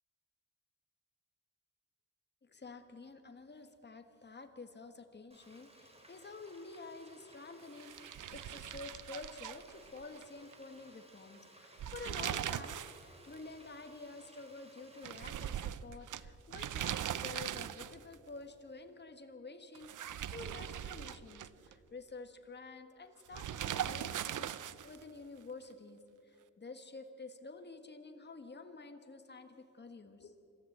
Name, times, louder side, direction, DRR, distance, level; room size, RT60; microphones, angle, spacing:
voice 1, 2.4-30.5, left 3 dB, 35° left, 7 dB, 1.6 m, -50 dB
Frying (food), 5.3-15.3, right 1 dB, 20° right, 3.3 m, -60 dB
sound 1, 7.8-10.2 10.5-10.6 11.6-13.0 13.3-13.4 15.0-18.1 19.7-21.7 23.3-25.0, right 10 dB, 75° right, 0.6 m, -40 dB
26.5 x 13.5 x 8.0 m, 2.9 s
wide cardioid pair, 95°, 31 cm